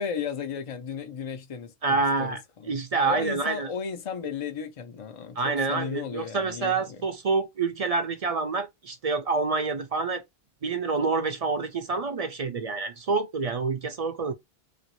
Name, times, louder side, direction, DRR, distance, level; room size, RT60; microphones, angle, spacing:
voice 1, 0.0-2.4 2.6-7.0, left 6 dB, 50° left, 0.4 m, -35 dB
voice 2, 1.8-2.4 2.7-3.7 5.4-10.2 10.6-14.3, right 4 dB, 50° right, 0.5 m, -27 dB
2.9 x 2.6 x 2.9 m
omnidirectional pair, 1.1 m